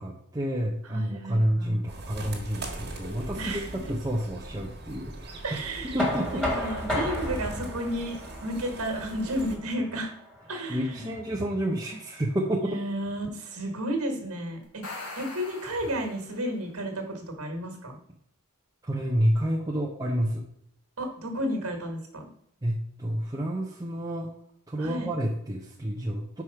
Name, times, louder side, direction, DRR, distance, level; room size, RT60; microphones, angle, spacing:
voice 1, 0.0-5.6 5.9-6.4 10.7-12.8 18.8-20.4 22.6-24.3 24.7-26.4, equal, 15° right, -1 dB, 0.6 m, -29 dB
voice 2, 0.9-1.8 3.3-3.7 5.4-10.1 10.5-11.1 12.6-18.0 21.0-22.3 24.8-25.1, equal, 65° right, 3 dB, 1.6 m, -32 dB
sound 1, 1.9-9.6, right 1 dB, 50° right, 1.5 m, -41 dB
Knock, 6.0-11.8, equal, 5° left, 2.0 m, -34 dB
sound 2, 14.6-16.6, left 2 dB, 90° left, 1.8 m, -42 dB
4.9 x 4.7 x 5.7 m, 0.71 s
head